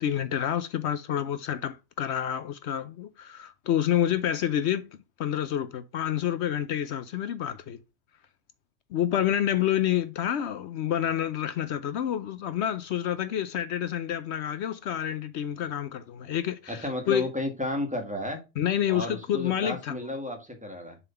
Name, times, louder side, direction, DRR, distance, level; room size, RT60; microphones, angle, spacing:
voice 1, 0.0-4.8 5.2-7.8 8.9-17.3 18.6-20.0, left 10 dB, 65° left, 0.8 m, -28 dB
voice 2, 16.7-18.4 18.9-21.0, left 1 dB, 5° right, 1.5 m, -33 dB
6.9 x 3.6 x 5.6 m
omnidirectional pair, 1.4 m